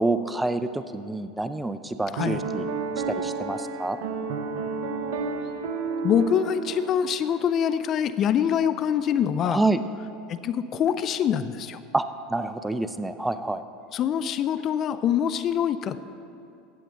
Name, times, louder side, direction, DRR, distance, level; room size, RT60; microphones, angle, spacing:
voice 1, 0.0-2.7 3.1-4.0 9.4-9.8 11.9-12.0 12.3-13.6, right 2 dB, 10° right, 11 dB, 0.5 m, -27 dB
Piano, 2.2-7.5, right 4 dB, 75° right, 0.8 m, -31 dB
voice 2, 6.0-9.6 10.3-11.8 13.9-16.0, left 8 dB, 45° left, 13 dB, 0.4 m, -24 dB
15.0 x 9.1 x 3.8 m, 2.6 s
hypercardioid pair, 85°, 0 cm